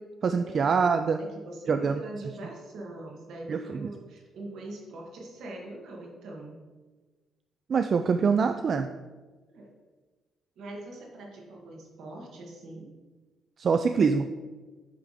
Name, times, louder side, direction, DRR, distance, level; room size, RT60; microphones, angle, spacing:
voice 1, 0.2-1.2 1.7-1.9 3.5-3.8 7.7-8.9 13.6-14.3, right 5 dB, 50° right, 7 dB, 0.3 m, -24 dB
voice 2, 1.2-6.6 9.5-9.7 10.6-12.9, right 2 dB, 75° right, 0 dB, 1.7 m, -42 dB
8.3 x 3.4 x 5.0 m, 1.3 s
cardioid pair, 90°, 0 cm